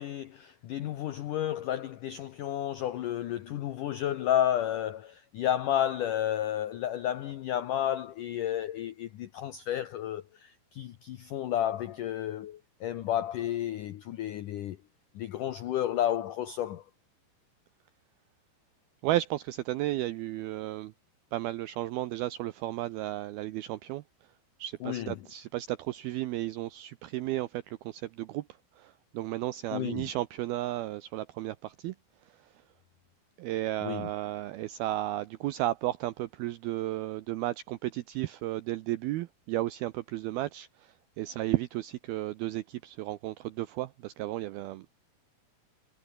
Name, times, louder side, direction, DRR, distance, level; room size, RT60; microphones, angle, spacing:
voice 1, 0.0-14.8 15.2-16.8 24.8-25.1 29.7-30.1 33.8-34.1, left 11 dB, 80° left, 1.8 m, -31 dB
voice 2, 19.0-20.9 21.3-24.0 24.6-28.5 28.8-31.9 32.3-32.5 33.4-44.9, right 16 dB, 80° right, 2.2 m, -33 dB
omnidirectional pair, 5.3 m